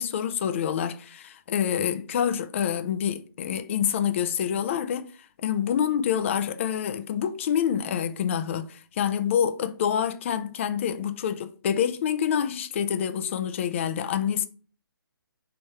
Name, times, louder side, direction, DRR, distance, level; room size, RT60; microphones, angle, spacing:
voice 1, 0.0-5.1 5.4-14.5, left 8 dB, 35° left, 0.3 m, -27 dB
3.2 x 3.0 x 4.6 m
hypercardioid pair, 155°, 12 cm